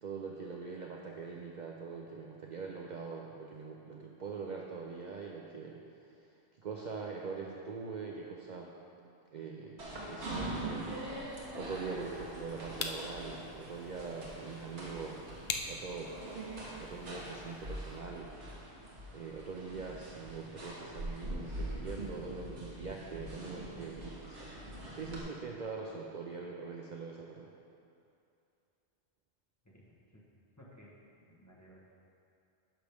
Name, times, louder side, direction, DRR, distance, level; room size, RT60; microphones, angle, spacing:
voice 1, 0.0-5.8 6.6-8.7 9.3-15.2 15.7-16.1 16.7-18.6 19.1-24.6 24.9-27.5, right 5 dB, 55° right, -1 dB, 0.6 m, -43 dB
sound 1, 9.8-25.2, right 1 dB, 80° right, 1.6 m, -43 dB
sound 2, 11.3-18.0, left 5 dB, 75° left, 0.9 m, -45 dB
voice 2, 29.6-30.3 30.5-31.9, equal, 15° left, -5 dB, 1.2 m, -58 dB
10.0 x 6.3 x 3.5 m, 2.7 s
omnidirectional pair, 1.1 m